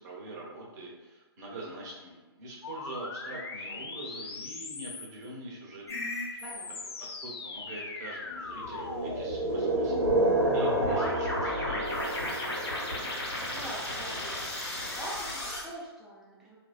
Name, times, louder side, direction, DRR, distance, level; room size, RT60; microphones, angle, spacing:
voice 1, 0.0-5.8 6.3-6.4 7.0-10.0 10.5-12.4, right 2 dB, 40° right, -3 dB, 0.7 m, -43 dB
sound 1, 2.6-5.3 6.1-12.1, left 4 dB, 65° left, 0.4 m, -40 dB
sound 2, 5.9-6.3 10.0-15.6, left 1 dB, 85° left, 1.2 m, -35 dB
voice 2, 6.4-6.7 13.0-16.6, right 1 dB, ahead, -7 dB, 0.4 m, -44 dB
sound 3, 8.6-13.6, right 2 dB, 80° right, 0.7 m, -29 dB
2.5 x 2.2 x 2.3 m, 1.2 s
figure-of-eight pair, 125°, 14 cm